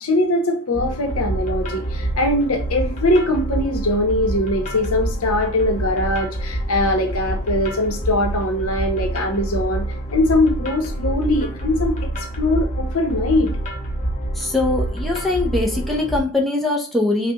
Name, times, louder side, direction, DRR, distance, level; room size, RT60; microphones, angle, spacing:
voice 1, 0.0-13.5, left 1 dB, 75° left, 4 dB, 0.9 m, -21 dB
sound 1, 0.7-16.2, right 1 dB, 35° left, 0.9 m, -27 dB
voice 2, 14.4-17.3, left 2 dB, ahead, -3 dB, 0.7 m, -22 dB
5.6 x 2.3 x 2.9 m, 0.38 s
head